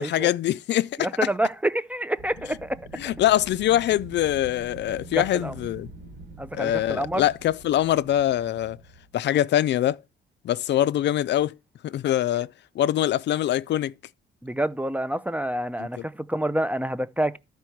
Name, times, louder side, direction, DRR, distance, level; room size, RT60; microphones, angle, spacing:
voice 1, 0.0-1.0 2.9-5.9 6.5-8.8 9.1-10.0 10.4-11.5 11.8-12.5 12.8-13.9 15.8-15.9, left 12 dB, 60° left, 0.4 m, -23 dB
voice 2, 1.0-2.8 5.1-5.5 6.4-7.2 14.4-17.4, right 1 dB, 5° right, 0.5 m, -27 dB
Wind, 2.2-9.1, right 2 dB, 60° right, 2.0 m, -45 dB
12.0 x 4.7 x 4.5 m
cardioid pair, 90°, 20 cm